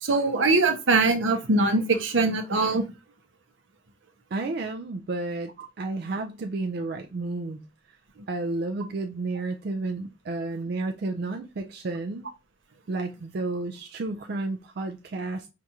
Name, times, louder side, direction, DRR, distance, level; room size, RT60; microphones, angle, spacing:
voice 1, 0.0-2.9, right 3 dB, 80° right, 6 dB, 0.8 m, -22 dB
voice 2, 4.3-5.5 5.8-7.6 7.9-8.0 8.3-12.3 12.9-15.5, right 2 dB, 55° right, 5 dB, 0.4 m, -31 dB
4.6 x 2.5 x 2.8 m, 0.27 s
head